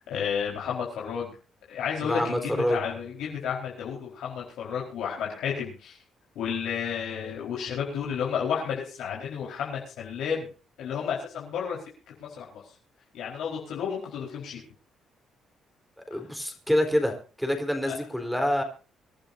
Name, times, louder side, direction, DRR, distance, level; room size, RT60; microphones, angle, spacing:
voice 1, 0.1-1.3 1.7-6.0 6.3-10.5 10.8-11.8 12.2-12.6 13.1-14.6 17.9-18.0, left 7 dB, 85° left, -3 dB, 4.5 m, -32 dB
voice 2, 2.0-2.8 16.1-18.6, equal, ahead, 5 dB, 4.2 m, -26 dB
25.5 x 11.5 x 2.7 m, 0.36 s
cardioid pair, 90°, 0 cm